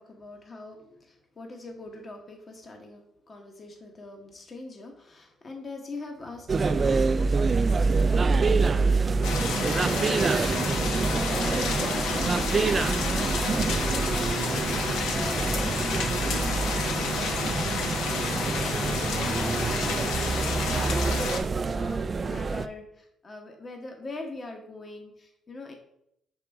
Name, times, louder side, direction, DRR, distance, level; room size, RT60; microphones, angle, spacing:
voice 1, 0.0-25.7, left 2 dB, 40° left, 3 dB, 1.1 m, -43 dB
sound 1, 6.5-22.7, right 4 dB, 35° right, 0.3 m, -26 dB
sound 2, 9.2-21.4, left 4 dB, 90° left, 0.9 m, -30 dB
5.9 x 4.9 x 3.5 m, 0.75 s
cardioid pair, 90°, 0 cm